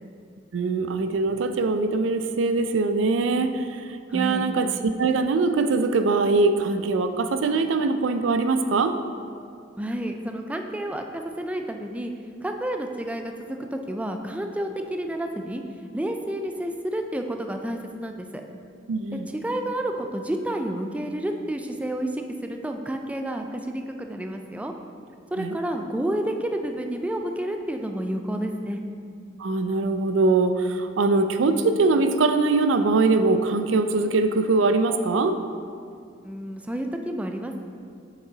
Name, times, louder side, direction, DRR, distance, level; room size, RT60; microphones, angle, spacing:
voice 1, 0.5-3.8 4.1-8.9 18.9-19.3 25.4-25.6 29.4-35.4, right 3 dB, 85° right, 9 dB, 0.4 m, -22 dB
voice 2, 4.1-4.4 9.8-12.1 12.4-15.6 15.9-18.4 19.3-24.7 25.3-28.8 36.2-37.6, right 1 dB, 5° right, 4 dB, 0.3 m, -30 dB
6.1 x 5.3 x 3.9 m, 2.4 s
head